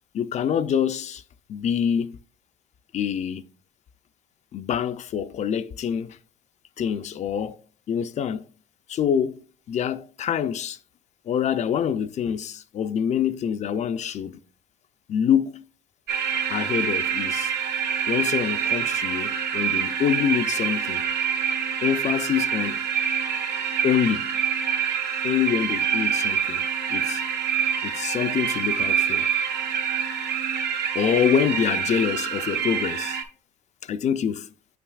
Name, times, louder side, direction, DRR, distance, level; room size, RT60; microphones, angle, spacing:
voice 1, 0.1-1.2 1.5-2.2 2.9-3.4 4.5-6.2 6.8-7.6 7.9-8.4 8.9-9.4 9.7-10.8 11.3-14.4 15.1-15.6 16.5-17.5 18.1-21.0 21.8-22.8 23.8-24.3 25.2-26.6 26.9-27.2 27.8-29.3 30.9-33.2 33.8-34.5, left 8 dB, 45° left, 0.4 m, -25 dB
sound 1, 16.1-33.2, right 7 dB, 75° right, 0.9 m, -26 dB
7.6 x 5.8 x 2.3 m
cardioid pair, 110°, 17 cm